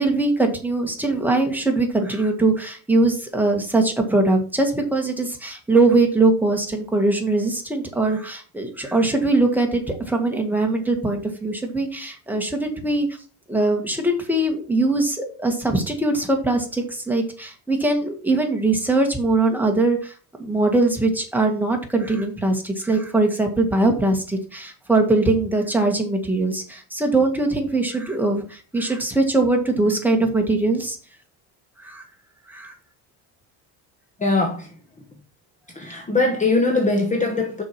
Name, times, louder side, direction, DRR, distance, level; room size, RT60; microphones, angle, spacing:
voice 1, 0.0-13.1 13.5-20.1 20.4-31.0 31.8-32.0 32.5-32.7, right 2 dB, 5° right, 1.8 m, -21 dB
voice 2, 34.2-34.7 35.7-37.6, left 3 dB, 20° left, 1.1 m, -21 dB
6.2 x 4.9 x 5.7 m
cardioid pair, 115°, 40 cm